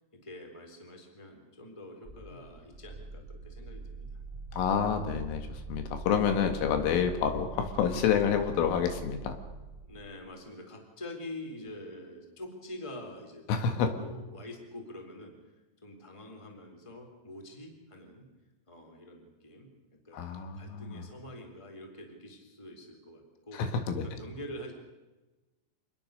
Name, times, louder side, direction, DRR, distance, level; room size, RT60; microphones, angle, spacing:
voice 1, 0.2-4.1 9.9-13.5 13.8-15.3 15.8-18.2 18.7-19.7 20.0-20.2 20.5-23.6 24.0-24.7, left 1 dB, 5° left, 3 dB, 3.0 m, -45 dB
sound 1, 2.0-10.2, right 3 dB, 80° right, 0.5 m, -44 dB
voice 2, 4.5-9.4 13.5-14.0 20.1-21.1 23.5-24.1, left 7 dB, 75° left, 7 dB, 4.3 m, -28 dB
26.5 x 20.5 x 6.7 m, 1.1 s
omnidirectional pair, 5.9 m